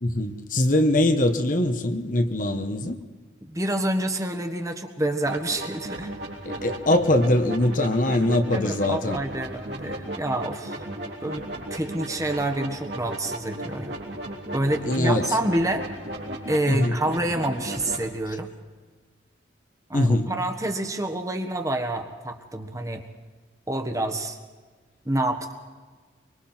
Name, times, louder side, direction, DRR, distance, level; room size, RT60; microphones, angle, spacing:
voice 1, 0.0-3.0 6.4-9.2 14.8-15.3 16.6-16.9 19.9-20.3, left 1 dB, 45° left, 7 dB, 1.3 m, -22 dB
voice 2, 3.4-6.1 8.5-10.9 11.2-14.0 14.5-15.9 16.5-18.5 19.9-23.1 23.7-24.4 25.0-25.5, right 1 dB, 15° right, 5 dB, 1.4 m, -28 dB
sound 1, 5.3-18.1, right 1 dB, 60° right, 3.6 m, -35 dB
24.5 x 24.0 x 4.5 m, 1.4 s
head